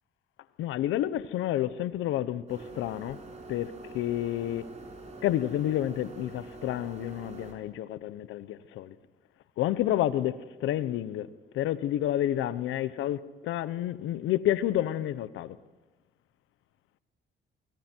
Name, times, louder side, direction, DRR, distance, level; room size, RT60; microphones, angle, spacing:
voice 1, 0.6-3.2 3.5-4.7 5.2-9.0 9.6-11.3 11.5-15.6, left 12 dB, 90° left, 0.9 m, -30 dB
sound 1, 2.5-7.5, right 3 dB, 35° right, 6.3 m, -45 dB
27.0 x 24.5 x 4.6 m
cardioid pair, 90°, 20 cm